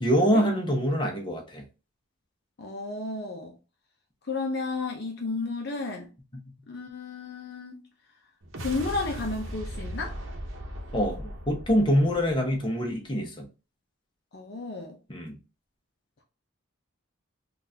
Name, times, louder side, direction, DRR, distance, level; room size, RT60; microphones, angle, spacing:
voice 1, 0.0-1.6 10.9-13.5 15.1-15.4, equal, 25° left, 0.8 m, -25 dB
voice 2, 2.6-3.6 4.2-6.1 6.7-7.8 8.6-10.2 14.3-15.0, left 3 dB, 50° left, 0.6 m, -32 dB
sound 1, 8.4-12.9, equal, 65° right, 0.8 m, -38 dB
3.7 x 2.4 x 2.7 m
head